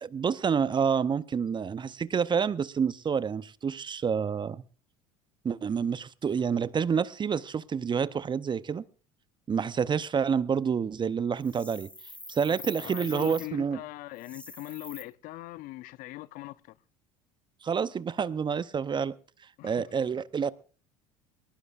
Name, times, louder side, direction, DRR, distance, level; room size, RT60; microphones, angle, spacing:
voice 1, 0.0-4.6 5.4-8.8 9.5-11.9 12.3-13.8 17.6-19.1 19.6-20.5, right 6 dB, 25° right, 0.7 m, -28 dB
sound 1, 11.4-13.5 14.1-15.0, left 1 dB, 5° left, 1.9 m, -45 dB
voice 2, 12.4-16.8 19.6-19.9, left 18 dB, 55° left, 0.7 m, -41 dB
21.0 x 19.0 x 2.5 m
hypercardioid pair, 70°, 17 cm